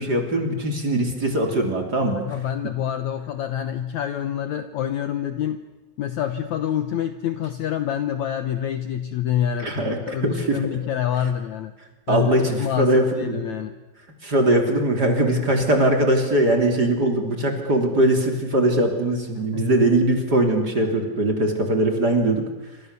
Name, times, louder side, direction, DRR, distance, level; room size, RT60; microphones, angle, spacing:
voice 1, 0.0-2.2 9.6-10.6 12.1-13.4 14.2-22.4, right 1 dB, 25° right, 3 dB, 3.2 m, -21 dB
voice 2, 2.0-5.6 6.0-11.7 12.1-13.7 19.5-19.8, left 10 dB, 85° left, 9 dB, 1.6 m, -27 dB
27.5 x 26.5 x 6.9 m, 1.1 s
omnidirectional pair, 4.7 m